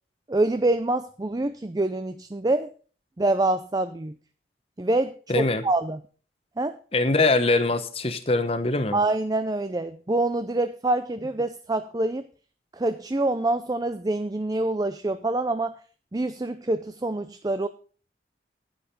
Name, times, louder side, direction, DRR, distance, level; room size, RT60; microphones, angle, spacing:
voice 1, 0.3-2.7 3.2-4.2 4.8-6.0 6.6-6.8 8.9-12.2 12.7-15.8 16.1-17.7, right 2 dB, 20° right, 11 dB, 0.5 m, -26 dB
voice 2, 5.3-5.6 6.9-9.0, left 2 dB, 30° left, 10 dB, 1.0 m, -23 dB
10.0 x 9.4 x 5.1 m, 0.39 s
head